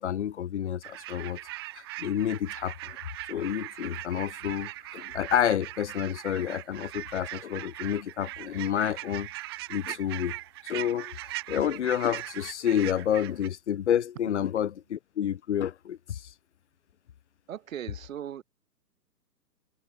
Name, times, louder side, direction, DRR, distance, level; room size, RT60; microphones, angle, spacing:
voice 1, 0.0-1.4 2.0-3.0 3.3-9.3 9.7-10.4 10.6-11.2 11.5-16.2, left 10 dB, 45° left, 0.5 m, -29 dB
sound 1, 0.8-13.5, right 18 dB, 15° right, 0.7 m, -40 dB
voice 2, 17.5-18.4, right 10 dB, 50° right, 5.7 m, -38 dB
hypercardioid pair, 150°, 50 cm